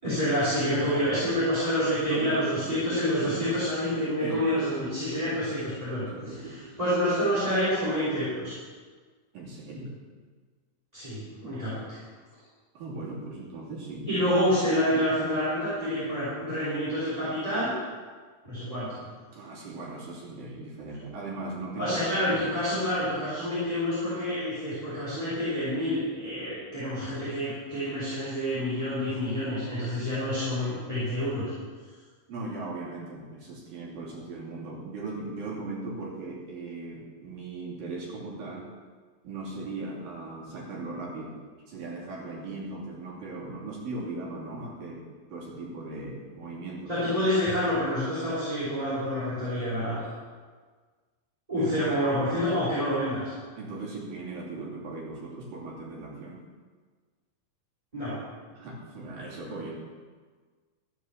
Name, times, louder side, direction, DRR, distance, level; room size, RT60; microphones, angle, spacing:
voice 1, 0.0-6.0 6.8-8.5 10.9-11.8 14.0-17.7 18.4-19.0 21.8-31.5 46.9-50.0 51.5-53.3 57.9-58.1, equal, 10° right, -11 dB, 4.9 m, -28 dB
voice 2, 2.1-3.6 4.2-5.4 6.0-6.7 9.3-10.0 12.7-14.2 15.0-15.1 19.3-22.0 32.3-38.7 39.2-41.4 41.7-46.9 51.6-51.9 53.6-56.5 58.5-59.7, right 2 dB, 65° right, -4 dB, 4.6 m, -38 dB
15.0 x 7.6 x 7.5 m, 1.5 s
omnidirectional pair, 4.5 m